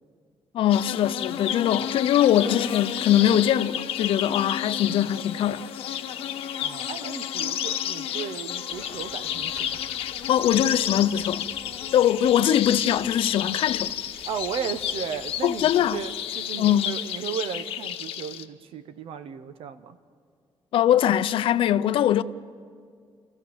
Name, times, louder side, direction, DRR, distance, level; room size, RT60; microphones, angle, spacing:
voice 1, 0.5-5.6 10.3-11.5 11.9-13.9 15.4-16.0 16.6-17.0 20.7-22.2, left 11 dB, 65° left, 0.5 m, -22 dB
sound 1, 0.7-18.4, left 10 dB, 80° left, 1.0 m, -31 dB
voice 2, 6.6-9.8 14.3-20.0, right 7 dB, 70° right, 1.0 m, -35 dB
sound 2, 8.7-16.0, right 2 dB, 25° right, 2.8 m, -51 dB
29.0 x 14.5 x 7.3 m
cardioid pair, 170°, 10 cm